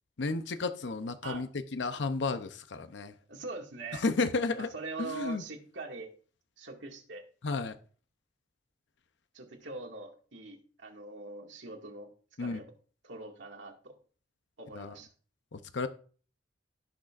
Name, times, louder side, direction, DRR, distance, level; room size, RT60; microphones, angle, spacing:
voice 1, 0.2-3.1 3.9-4.7 5.0-5.4 7.4-7.7 12.4-12.6 14.7-14.9 15.5-15.9, left 3 dB, 70° left, 0.7 m, -32 dB
voice 2, 3.3-4.0 4.7-6.1 6.6-7.2 9.3-12.1 12.4-12.7 13.0-14.0 14.6-15.1, right 3 dB, 75° right, 2.1 m, -43 dB
16.5 x 6.4 x 2.5 m
head